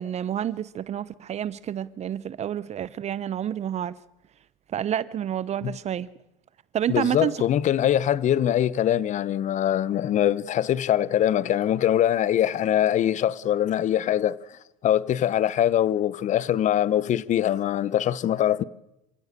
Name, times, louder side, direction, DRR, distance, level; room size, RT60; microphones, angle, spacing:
voice 1, 0.0-4.0 4.7-6.1 6.7-7.4, right 10 dB, 35° right, 0.7 m, -29 dB
voice 2, 6.9-14.4 14.8-18.6, left 11 dB, 40° left, 0.9 m, -23 dB
27.5 x 16.0 x 6.7 m
hypercardioid pair, 85°, 18 cm